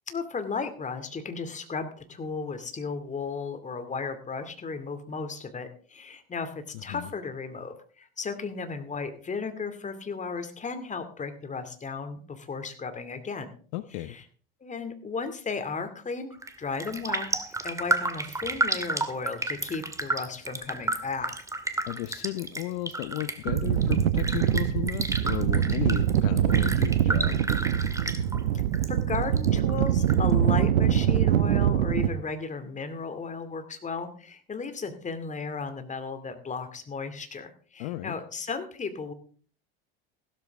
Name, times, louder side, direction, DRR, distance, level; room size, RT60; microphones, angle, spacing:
voice 1, 0.1-13.5 13.9-14.2 14.6-17.3 17.6-21.3 28.5-28.6 28.9-39.1, left 4 dB, 25° left, 8 dB, 2.5 m, -35 dB
voice 2, 6.7-7.1 13.7-14.2 21.9-27.4 37.8-38.1, left 16 dB, 65° left, 13 dB, 0.9 m, -34 dB
Raindrop, 16.3-16.5 16.8-28.9 29.1-30.1 30.5-30.6, right 2 dB, 10° right, 2.0 m, -31 dB
sound 1, 23.5-32.1, right 10 dB, 80° right, 1.1 m, -24 dB
15.5 x 13.0 x 3.6 m, 0.43 s
hypercardioid pair, 75°, 30 cm